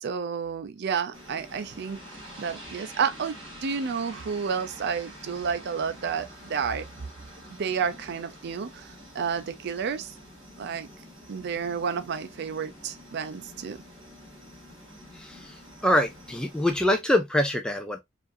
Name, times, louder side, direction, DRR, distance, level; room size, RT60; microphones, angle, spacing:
voice 1, 0.0-2.0 2.4-3.4 3.6-6.8 7.6-10.1 10.6-10.9 11.3-13.8, right 6 dB, 55° right, 0.4 m, -30 dB
sound 1, 1.1-16.7, equal, 25° right, 2.1 m, -47 dB
voice 2, 15.8-18.0, left 1 dB, 5° left, 0.4 m, -24 dB
4.9 x 2.6 x 2.5 m
head